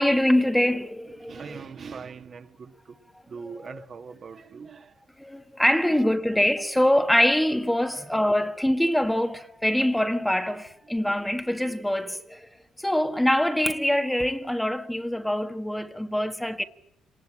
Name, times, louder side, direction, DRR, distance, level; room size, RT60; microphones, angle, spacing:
voice 1, 0.0-1.6 3.4-3.8 5.2-12.5 12.8-16.6, left 1 dB, 5° left, 1.5 m, -24 dB
voice 2, 1.2-3.0 3.3-5.0, right 5 dB, 50° right, 1.9 m, -41 dB
26.5 x 19.5 x 8.9 m
cardioid pair, 90°, 0 cm